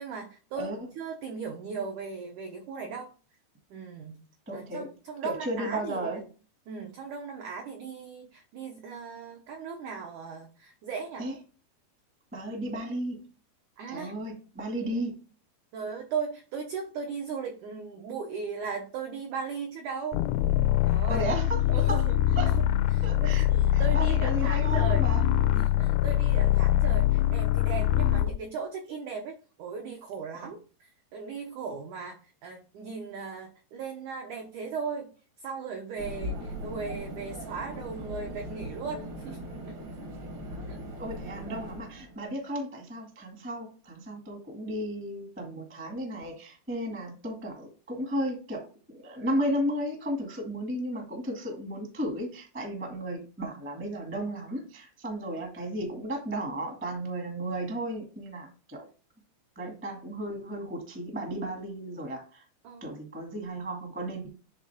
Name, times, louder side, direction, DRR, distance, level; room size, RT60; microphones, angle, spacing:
voice 1, 0.0-3.1 3.7-4.1 4.5-6.2 6.7-11.3 13.8-14.1 15.7-20.2 20.8-21.3 21.7-22.2 22.9-25.0 25.5-35.1 35.4-39.8 40.7-40.8 62.6-63.0, right 5 dB, 90° right, 3 dB, 1.7 m, -37 dB
voice 2, 4.4-4.9 5.2-6.2 11.2-11.3 12.3-13.2 13.9-15.1 21.0-22.0 22.3-22.5 23.0-25.2 30.3-30.5 41.0-48.7 48.9-58.9 59.5-62.4 62.8-64.3, right 1 dB, 20° right, 1 dB, 0.3 m, -34 dB
sound 1, 20.1-28.4, left 13 dB, 80° left, 2.4 m, -24 dB
sound 2, 36.0-42.2, equal, 70° right, 1.1 m, -39 dB
9.8 x 3.7 x 3.5 m, 0.36 s
omnidirectional pair, 4.8 m